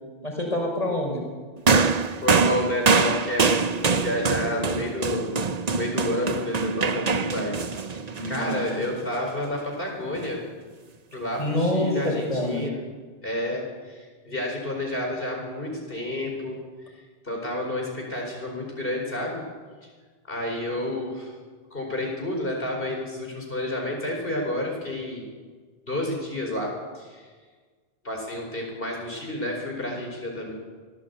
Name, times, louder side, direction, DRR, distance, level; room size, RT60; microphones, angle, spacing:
voice 1, 0.2-1.2 4.4-4.8 7.2-7.4 8.1-8.8 11.4-12.7, left 1 dB, 40° left, 1 dB, 5.4 m, -27 dB
sound 1, 1.7-9.2 10.2-10.3, right 4 dB, 45° right, 0.9 m, -24 dB
voice 2, 2.2-5.3 5.7-8.0 8.3-10.4 11.1-12.8 13.2-16.6 16.8-19.4 20.3-21.3 21.7-25.2 25.9-27.3 28.0-30.5, left 1 dB, 60° left, 0 dB, 4.9 m, -30 dB
24.5 x 17.0 x 8.3 m, 1.5 s
omnidirectional pair, 1.0 m